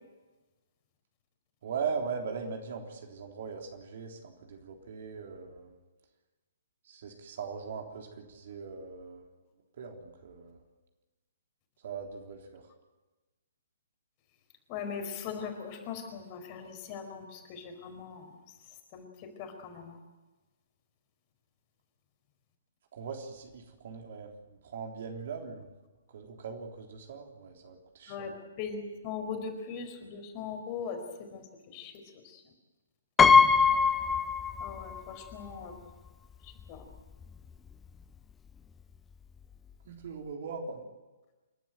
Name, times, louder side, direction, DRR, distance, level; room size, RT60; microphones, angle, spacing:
voice 1, 1.6-5.7 6.8-9.3 9.8-10.6 11.8-12.7 22.9-24.3 24.6-25.7 26.1-28.3 33.2-33.5 39.9-40.8, right 5 dB, 50° right, 2 dB, 3.5 m, -40 dB
voice 2, 14.7-18.4 18.9-19.1 19.4-20.0 28.1-28.3 28.6-32.4 34.6-35.7 36.4-36.8, left 6 dB, 30° left, 4 dB, 4.6 m, -40 dB
Piano, 33.2-35.0 35.3-35.4 36.6-36.7 37.0-37.2, left 5 dB, 10° left, 0.7 m, -22 dB
28.5 x 12.5 x 9.2 m, 1.2 s
figure-of-eight pair, 125°, 0 cm